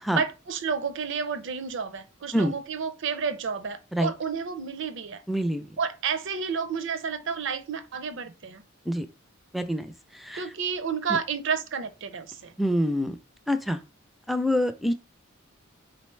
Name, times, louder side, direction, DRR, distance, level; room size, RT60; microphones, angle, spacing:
voice 1, 0.1-5.2 5.8-8.6 10.3-12.5, right 6 dB, 65° right, 0.5 m, -31 dB
voice 2, 5.3-5.7 8.9-9.1 9.5-10.5 12.6-13.2 13.5-13.8 14.3-14.9, equal, ahead, 0.4 m, -26 dB
4.2 x 3.8 x 3.2 m
head